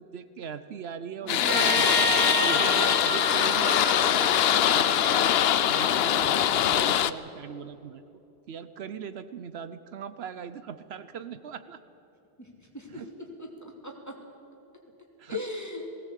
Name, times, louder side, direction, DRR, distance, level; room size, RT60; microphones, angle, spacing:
voice 1, 0.0-1.8 2.4-8.0 8.5-11.8 12.9-13.1 15.2-15.4, right 7 dB, 75° right, 13 dB, 1.0 m, -40 dB
voice 2, 1.2-1.8 12.4-12.5 12.7-13.0 13.4-14.1 15.3-15.9, left 2 dB, 15° left, 0 dB, 2.8 m, -36 dB
sound 1, 1.3-7.1, left 10 dB, 70° left, 0.8 m, -23 dB
Trumpet, 1.5-6.0, right 4 dB, 60° right, 1.3 m, -32 dB
19.5 x 17.0 x 8.3 m, 2.9 s
omnidirectional pair, 1.1 m